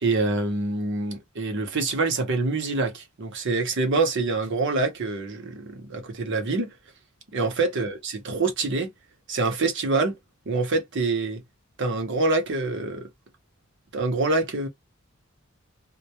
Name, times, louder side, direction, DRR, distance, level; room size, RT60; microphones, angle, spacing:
voice 1, 0.0-6.7 7.3-8.9 9.3-10.1 10.5-11.4 11.8-13.1 13.9-14.7, right 3 dB, 60° right, 0.7 m, -25 dB
2.2 x 2.0 x 2.7 m
head